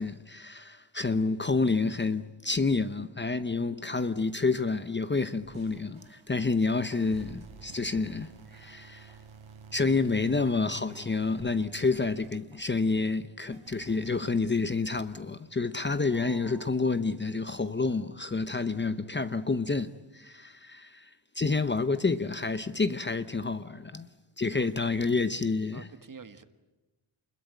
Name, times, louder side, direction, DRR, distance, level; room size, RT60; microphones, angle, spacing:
voice 1, 0.0-9.1 9.7-24.1 24.4-25.9, left 4 dB, 25° left, 0.8 m, -29 dB
sound 1, 5.4-12.9 13.4-14.3, right 5 dB, 85° right, 3.7 m, -51 dB
voice 2, 16.0-16.9 24.5-24.7 25.7-26.4, right 5 dB, 40° right, 1.7 m, -48 dB
28.5 x 21.5 x 9.1 m
wide cardioid pair, 150°, 47 cm